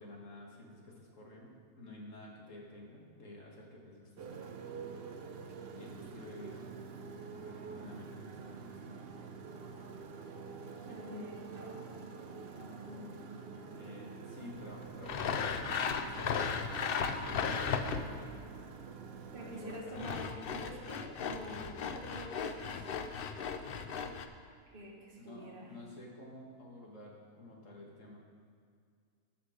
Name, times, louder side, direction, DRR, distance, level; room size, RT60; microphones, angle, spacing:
voice 1, 0.0-4.5 5.8-6.7 7.3-9.1 10.8-11.0 13.7-16.7 17.1-18.3 19.4-20.2 25.2-28.2, left 1 dB, 55° left, -1 dB, 2.0 m, -51 dB
Motorcycle, 4.2-19.8, right 5 dB, 55° right, 0.7 m, -47 dB
voice 2, 10.8-13.2 19.3-22.9 24.7-25.7, right 1 dB, 35° right, -3 dB, 1.7 m, -47 dB
Sawing, 15.0-18.3 19.7-24.3, left 6 dB, 75° left, 0.5 m, -36 dB
13.0 x 5.9 x 5.0 m, 2.2 s
omnidirectional pair, 1.6 m